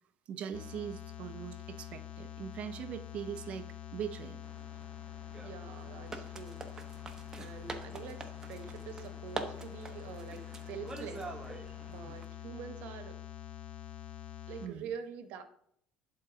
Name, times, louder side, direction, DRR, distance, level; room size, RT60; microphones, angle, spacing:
voice 1, 0.3-4.4 14.6-14.9, right 8 dB, 50° right, 10 dB, 0.6 m, -41 dB
sound 1, 0.5-14.7, left 10 dB, 60° left, 0.7 m, -46 dB
sound 2, 4.4-12.2, right 3 dB, 20° right, 0.9 m, -46 dB
voice 2, 5.4-6.6 7.4-11.4 11.9-13.2 14.5-15.4, right 7 dB, 75° right, 9 dB, 1.0 m, -45 dB
11.0 x 3.8 x 3.8 m, 0.69 s
cardioid pair, 115°, 3 cm